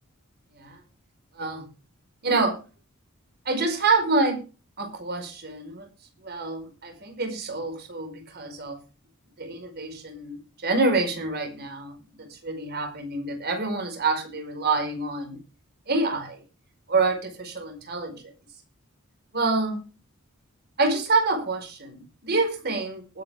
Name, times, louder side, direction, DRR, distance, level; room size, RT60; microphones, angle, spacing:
voice 1, 1.4-1.7 2.2-2.6 3.4-4.4 4.8-5.8 6.2-8.8 9.4-15.4 15.9-16.4 16.9-18.2 19.3-19.9 20.8-23.2, right 3 dB, 50° right, 5 dB, 4.9 m, -27 dB
19.5 x 9.2 x 3.7 m, 0.32 s
head